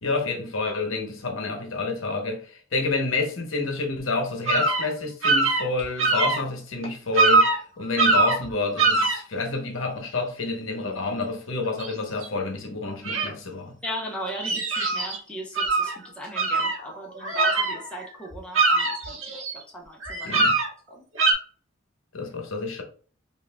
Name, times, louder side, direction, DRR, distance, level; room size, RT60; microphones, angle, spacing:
voice 1, 0.0-13.8 20.2-20.6 22.1-22.8, left 3 dB, 75° left, 0.9 m, -29 dB
sound 1, 4.5-4.9 5.2-6.4 6.8-6.9 7.2-7.6 8.0-8.5 8.8-9.2 11.8-11.9 12.2-12.3 13.0-13.3 14.0-15.2 15.6-16.0 16.4-18.0 18.3-19.6 20.0-20.7 21.2-21.3, right 3 dB, 80° right, 1.1 m, -22 dB
voice 2, 13.8-20.4 20.9-21.0, equal, 5° left, 0.7 m, -38 dB
5.5 x 2.5 x 2.2 m
head